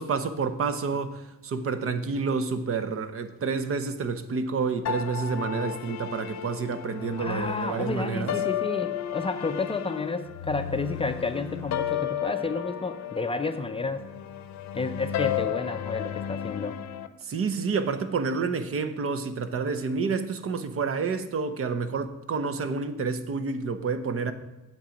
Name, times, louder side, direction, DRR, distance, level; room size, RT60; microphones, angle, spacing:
voice 1, 0.0-8.4 17.2-24.3, right 5 dB, 50° right, 0.8 m, -29 dB
sound 1, 4.9-17.1, left 10 dB, 70° left, 0.6 m, -33 dB
voice 2, 7.2-14.0 14.7-16.8, left 3 dB, 20° left, 0.4 m, -31 dB
8.5 x 7.4 x 5.2 m
cardioid pair, 145°, 29 cm